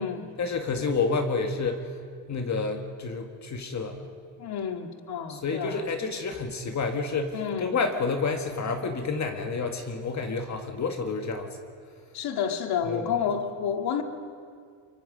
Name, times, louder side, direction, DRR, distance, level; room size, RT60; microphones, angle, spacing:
voice 1, 0.4-1.9 2.3-4.1 5.3-11.6 12.8-13.1, left 4 dB, 35° left, 5 dB, 1.8 m, -29 dB
voice 2, 4.4-5.8 7.3-7.7 12.1-14.0, left 7 dB, 50° left, 5 dB, 2.2 m, -30 dB
24.0 x 23.0 x 5.2 m, 2.2 s
cardioid pair, 110°, 47 cm